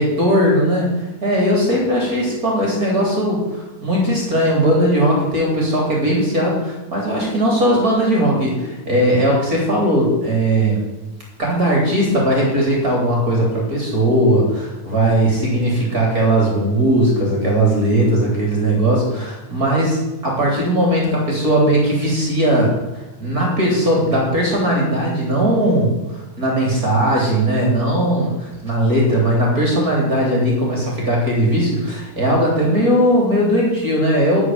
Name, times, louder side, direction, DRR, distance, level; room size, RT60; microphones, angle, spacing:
voice 1, 0.0-10.8 11.4-34.4, right 1 dB, 30° right, -2 dB, 3.7 m, -18 dB
13.0 x 6.3 x 9.4 m, 1.1 s
omnidirectional pair, 3.5 m